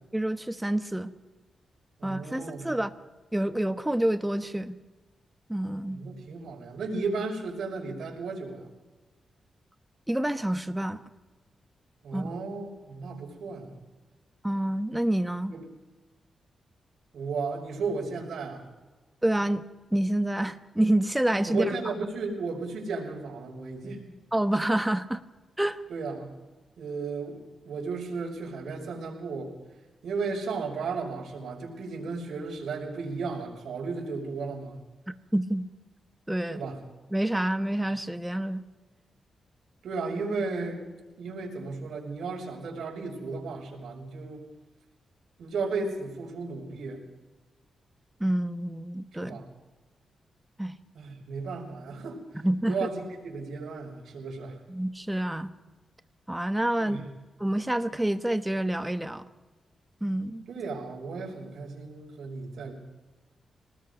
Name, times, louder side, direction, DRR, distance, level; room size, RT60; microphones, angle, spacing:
voice 1, 0.1-1.1 2.0-2.9 3.3-4.8 5.5-6.0 10.1-11.0 12.1-12.3 14.4-15.5 19.2-19.6 19.9-21.6 24.3-25.2 25.6-25.8 35.3-35.7 36.3-36.6 37.1-38.6 48.2-49.4 50.6-50.7 52.4-52.8 54.7-55.5 56.3-57.1 57.4-59.2 60.0-60.4, right 1 dB, 10° right, 9 dB, 1.1 m, -27 dB
voice 2, 2.0-2.7 5.9-8.7 12.0-13.8 15.5-15.6 17.1-18.6 21.5-24.0 25.9-26.3 26.8-27.4 27.6-29.5 30.0-34.8 36.5-36.8 39.8-40.8 41.2-44.4 45.4-47.0 49.2-49.5 50.9-52.2 52.7-54.6 56.8-57.0 60.5-62.7, right 4 dB, 80° right, -1 dB, 5.7 m, -34 dB
25.5 x 19.5 x 5.3 m, 1.2 s
cardioid pair, 110°, 0 cm